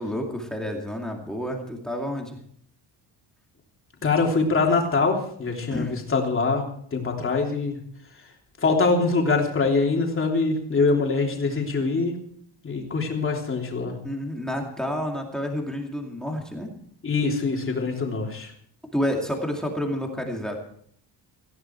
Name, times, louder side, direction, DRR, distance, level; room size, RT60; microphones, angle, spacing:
voice 1, 0.0-2.4 5.7-6.0 14.0-16.7 18.9-20.6, equal, ahead, 1 dB, 2.4 m, -29 dB
voice 2, 4.0-7.8 8.6-12.1 12.6-14.0 17.0-18.5, left 4 dB, 30° left, 1 dB, 3.3 m, -23 dB
18.5 x 15.5 x 4.6 m, 0.63 s
cardioid pair, 175°, 44 cm